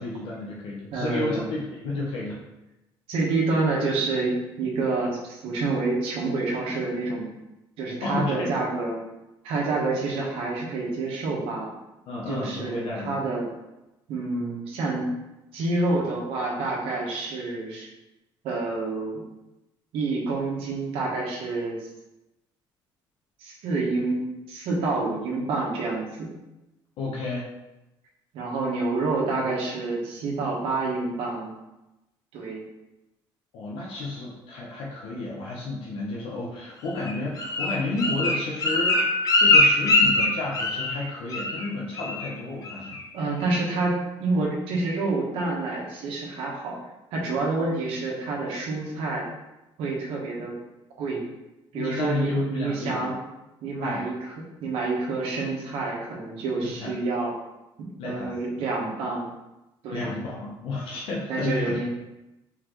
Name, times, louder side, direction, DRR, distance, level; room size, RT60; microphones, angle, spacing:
voice 1, 0.0-2.4 8.0-8.5 12.1-13.2 27.0-27.5 33.5-39.0 39.4-43.0 51.7-53.1 53.8-54.1 56.6-56.9 58.0-58.4 59.9-61.9, left 2 dB, 75° left, -4 dB, 0.9 m, -31 dB
voice 2, 0.9-1.5 3.1-7.3 7.8-9.0 9.4-11.7 12.3-13.5 14.1-15.1 15.5-17.9 18.4-19.2 19.9-21.9 23.4-26.3 28.3-31.5 32.3-32.6 43.1-46.8 47.1-49.3 49.8-50.5 51.0-51.2 51.7-53.1 53.6-54.3 54.6-57.3 57.8-59.3 59.8-60.2 61.3-61.9, right 3 dB, 85° right, -2 dB, 1.2 m, -28 dB
Bird, 37.0-41.0 41.3-41.7 42.0-42.3 42.6-43.0 43.4-43.5, left 2 dB, 40° left, 0.8 m, -22 dB
Piano, 38.9-41.0, left 2 dB, 20° right, 1.6 m, -33 dB
4.2 x 4.0 x 3.1 m, 0.97 s
cardioid pair, 125°, 9 cm